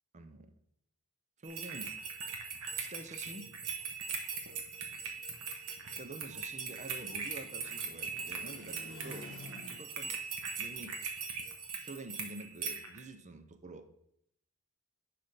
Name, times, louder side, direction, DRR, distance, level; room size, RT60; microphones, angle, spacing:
voice 1, 0.1-0.5 1.4-2.0 2.8-3.5 6.0-10.2 10.6-11.0 11.8-13.9, right 2 dB, 30° right, 8 dB, 0.6 m, -48 dB
sound 1, 1.4-13.0, right 5 dB, 90° right, 1.5 m, -40 dB
sound 2, 4.6-10.1, left 1 dB, 55° left, 1.1 m, -53 dB
10.5 x 4.2 x 5.2 m, 0.76 s
head